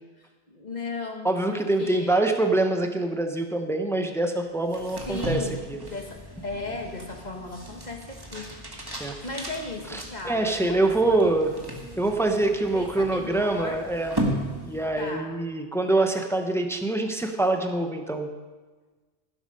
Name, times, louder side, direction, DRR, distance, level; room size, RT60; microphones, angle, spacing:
voice 1, 0.2-2.3 5.1-8.5 8.7-11.5 12.7-13.9 15.0-15.3, left 3 dB, 40° left, 2 dB, 1.6 m, -36 dB
voice 2, 1.2-5.8 9.0-9.1 9.9-11.5 12.0-14.1 14.6-18.3, right 2 dB, 5° left, 5 dB, 0.8 m, -25 dB
sound 1, 4.6-15.2, right 1 dB, 20° right, 1.6 m, -36 dB
17.0 x 7.9 x 5.4 m, 1.3 s
omnidirectional pair, 1.2 m